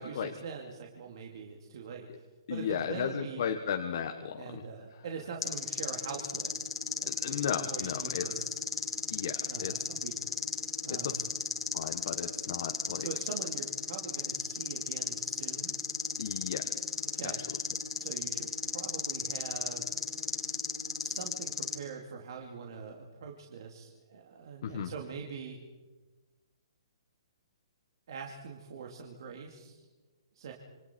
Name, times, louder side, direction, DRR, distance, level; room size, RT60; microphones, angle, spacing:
voice 1, 0.0-2.2 2.5-3.4 4.4-6.5 7.0-8.4 9.5-10.2 10.8-11.3 13.0-15.8 17.1-17.4 18.0-19.9 21.0-25.6 28.1-29.9 30.3-30.5, right 6 dB, 55° right, 1 dB, 2.5 m, -43 dB
voice 2, 2.5-4.6 4.9-5.0 7.1-8.6 9.1-9.9 10.9-11.2 11.7-13.1 16.2-17.0 17.2-17.3 24.6-24.9, left 8 dB, 55° left, 4 dB, 1.5 m, -35 dB
sound 1, 5.4-21.8, left 6 dB, 85° left, 3.0 m, -35 dB
27.5 x 25.0 x 4.5 m, 1.2 s
hypercardioid pair, 160°, 3 cm